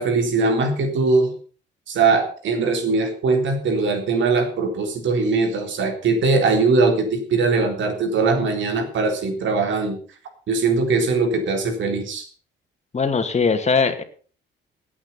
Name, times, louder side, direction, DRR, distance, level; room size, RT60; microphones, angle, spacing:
voice 1, 0.0-1.3 1.9-10.0 10.5-12.3, right 3 dB, 70° right, 5 dB, 3.8 m, -21 dB
voice 2, 12.9-14.0, left 5 dB, 35° left, 8 dB, 2.4 m, -20 dB
17.5 x 8.9 x 5.7 m, 0.41 s
cardioid pair, 90°, 20 cm